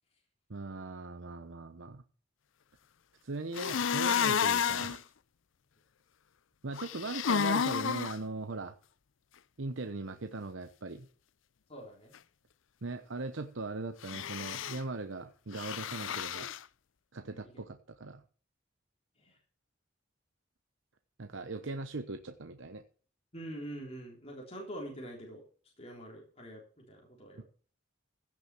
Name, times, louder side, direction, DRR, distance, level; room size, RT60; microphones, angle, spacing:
voice 1, 0.5-2.0 3.2-5.0 6.6-8.7 9.6-11.1 12.8-16.5 17.1-18.2 21.2-22.8 27.4-27.5, right 3 dB, 70° right, 8 dB, 0.9 m, -39 dB
sound 1, 3.5-5.0 6.8-8.2 14.0-14.8 15.5-16.6, left 7 dB, 75° left, 0.5 m, -31 dB
voice 2, 11.7-12.1 17.3-17.6 19.2-19.4 23.3-25.4 25.8-27.4, right 1 dB, 35° left, -1 dB, 3.6 m, -45 dB
16.0 x 6.5 x 6.0 m, 0.42 s
head